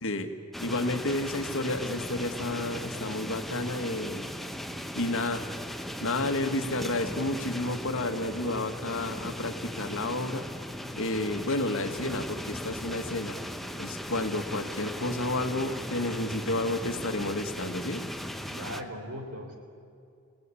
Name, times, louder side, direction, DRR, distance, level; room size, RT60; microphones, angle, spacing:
sound 1, 0.5-18.8, equal, ahead, 0.9 m, -38 dB
voice 1, 0.6-4.3 5.0-5.5 6.0-10.5 11.0-13.4 13.8-18.1, left 2 dB, 65° left, 7 dB, 1.8 m, -31 dB
voice 2, 18.5-19.6, equal, 70° right, 5 dB, 3.7 m, -39 dB
28.0 x 18.5 x 8.5 m, 2.4 s
head